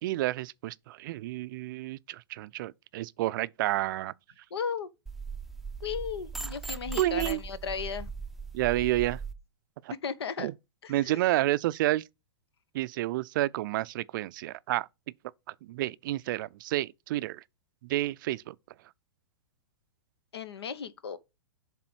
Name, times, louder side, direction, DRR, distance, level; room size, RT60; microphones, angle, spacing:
voice 1, 0.0-4.1 7.0-7.4 8.5-9.2 9.8-9.9 10.4-10.5 10.9-12.0 12.7-14.9 15.6-17.4 17.8-18.5, right 16 dB, 50° right, 0.4 m, -30 dB
voice 2, 4.5-4.9 5.8-8.1 10.0-10.5 10.8-11.4 20.3-21.2, left 6 dB, 80° left, 0.9 m, -35 dB
sound 1, 5.1-9.3, right 5 dB, ahead, 0.5 m, -39 dB
7.6 x 3.7 x 6.0 m
hypercardioid pair, 120°, 13 cm